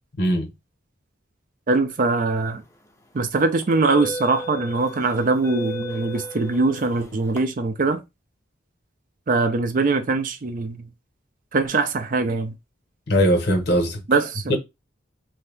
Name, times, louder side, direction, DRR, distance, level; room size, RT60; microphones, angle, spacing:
voice 1, 0.2-0.5 13.1-14.0 14.5-14.6, equal, 60° left, 0.9 m, -20 dB
voice 2, 1.7-2.6 3.1-8.0 9.3-10.9 11.5-12.5 14.1-14.6, right 3 dB, 45° right, 0.5 m, -22 dB
sound 1, 2.6-2.8 3.6-7.4, equal, 15° left, 0.6 m, -35 dB
2.7 x 2.7 x 3.3 m
head